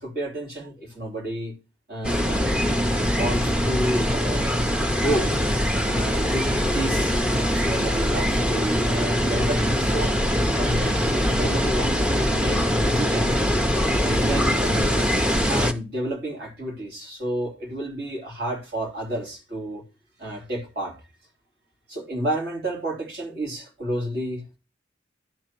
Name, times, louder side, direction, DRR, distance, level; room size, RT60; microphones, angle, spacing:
voice 1, 0.0-1.6 1.9-2.6 3.0-5.4 5.9-10.1 10.5-13.3 14.0-15.2 15.5-19.8 20.2-21.0 21.9-24.6, right 1 dB, 50° right, 3.2 m, -31 dB
sound 1, 2.0-15.7, equal, 5° right, 0.6 m, -22 dB
11.0 x 4.3 x 6.0 m
head